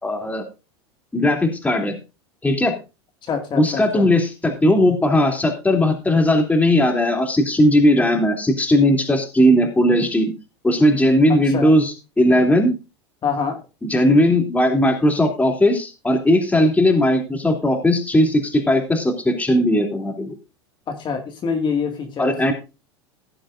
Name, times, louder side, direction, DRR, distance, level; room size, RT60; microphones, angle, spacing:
voice 1, 0.0-0.4 1.1-2.0 2.4-2.8 3.6-10.3 10.6-12.7 13.8-20.3 22.2-22.5, left 1 dB, 10° left, 2 dB, 3.0 m, -18 dB
voice 2, 3.3-4.1 11.3-11.7 13.2-13.6 20.9-22.5, left 6 dB, 35° left, 4 dB, 2.2 m, -25 dB
17.5 x 7.7 x 2.6 m, 0.29 s
hypercardioid pair, 100°, 14 cm